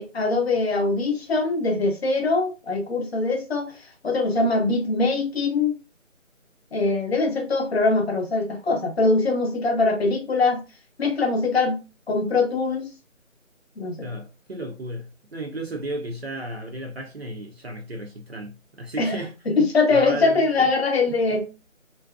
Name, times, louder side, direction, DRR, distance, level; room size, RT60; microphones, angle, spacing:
voice 1, 0.0-3.7 4.0-5.8 6.7-10.6 11.0-11.8 12.1-12.9 13.8-14.1 19.0-19.1 19.5-21.5, left 3 dB, 50° left, 0.6 m, -22 dB
voice 2, 14.0-19.3 19.9-20.7 21.1-21.2, right 1 dB, 50° right, 0.6 m, -34 dB
2.6 x 2.1 x 2.2 m
figure-of-eight pair, 170°, 40 cm